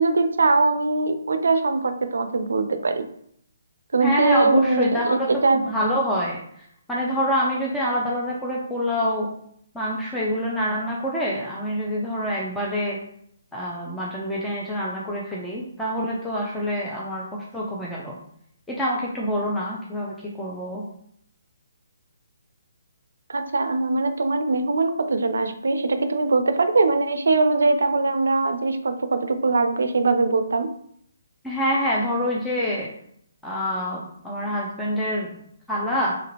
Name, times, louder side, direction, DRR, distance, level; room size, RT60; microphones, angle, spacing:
voice 1, 0.0-3.1 3.9-5.6 23.3-30.7, right 3 dB, 75° right, 9 dB, 0.4 m, -21 dB
voice 2, 4.0-9.3 9.7-13.0 13.5-18.2 18.7-20.8 31.4-32.9 33.4-35.4 35.7-36.2, equal, 5° left, -5 dB, 0.4 m, -26 dB
3.0 x 2.4 x 2.9 m, 0.68 s
hypercardioid pair, 145°, 0 cm